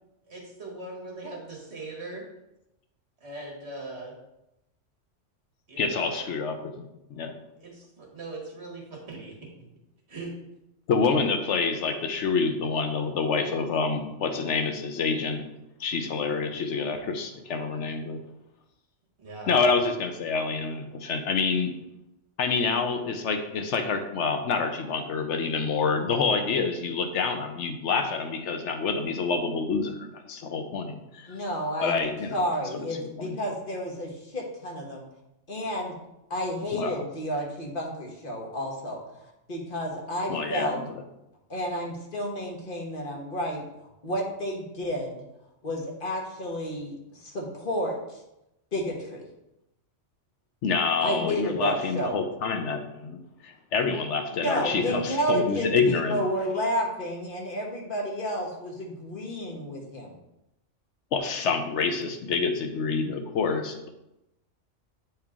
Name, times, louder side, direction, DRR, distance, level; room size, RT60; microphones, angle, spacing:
voice 1, 0.3-2.3 3.2-4.2 5.7-6.3 7.6-9.7 10.1-10.3 19.2-19.5, right 2 dB, 60° right, -1 dB, 2.0 m, -40 dB
voice 2, 5.8-7.4 10.9-15.4 15.8-18.2 19.5-21.7 22.4-31.4 31.8-32.4 32.7-33.4 36.7-37.0 40.3-40.9 50.6-56.2 61.1-63.9, left 4 dB, 70° left, 6 dB, 1.0 m, -27 dB
voice 3, 31.3-35.0 35.5-36.0 36.3-40.8 41.5-43.6 44.0-45.2 45.6-48.2 48.7-49.2 51.0-52.2 54.3-60.2, equal, 45° left, -1 dB, 1.4 m, -31 dB
8.4 x 4.4 x 3.6 m, 0.89 s
omnidirectional pair, 1.3 m